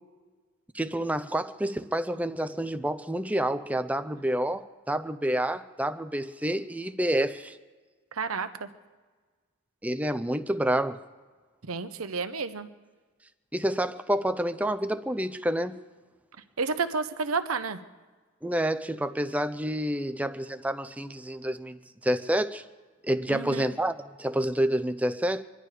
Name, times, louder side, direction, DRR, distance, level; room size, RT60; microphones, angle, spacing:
voice 1, 0.7-7.6 9.8-11.0 13.5-15.8 18.4-22.6 23.0-25.4, right 1 dB, 5° right, 8 dB, 0.5 m, -28 dB
voice 2, 8.1-8.7 11.6-12.7 16.6-17.8 23.3-23.7, right 4 dB, 85° right, 10 dB, 0.9 m, -31 dB
25.5 x 11.0 x 5.0 m, 1.4 s
head